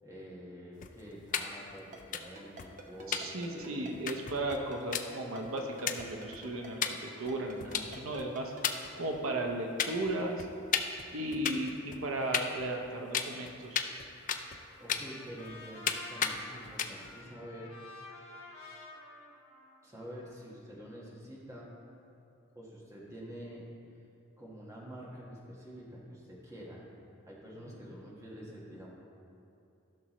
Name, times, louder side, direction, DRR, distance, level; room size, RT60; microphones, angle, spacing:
voice 1, 0.0-3.8 14.8-17.7 19.8-21.7 22.5-23.6 24.4-26.8 27.2-28.9, equal, 15° right, -5 dB, 1.5 m, -47 dB
sound 1, 0.8-1.4 1.7-1.8 2.0-2.2 2.6-2.7 3.1-3.2 3.6-3.7 3.9-4.7 4.9-5.0 5.4-5.5 5.9-6.4 6.8-6.9 7.3-8.3 8.6-9.5 9.8-10.1 10.4-12.1 12.3-12.9 13.1-14.6 14.9-15.5 15.9-16.0 16.2-16.4 16.6-17.1, left 8 dB, 40° left, 0.4 m, -33 dB
Ringtone, 1.9-8.6, right 3 dB, 40° right, 0.9 m, -48 dB
voice 2, 3.1-8.5 9.0-10.5 11.1-13.9, right 1 dB, 80° right, 2 dB, 0.9 m, -35 dB
Trumpet, 14.2-20.5, left 2 dB, 85° left, 1.6 m, -51 dB
15.5 x 6.1 x 3.1 m, 2.7 s
head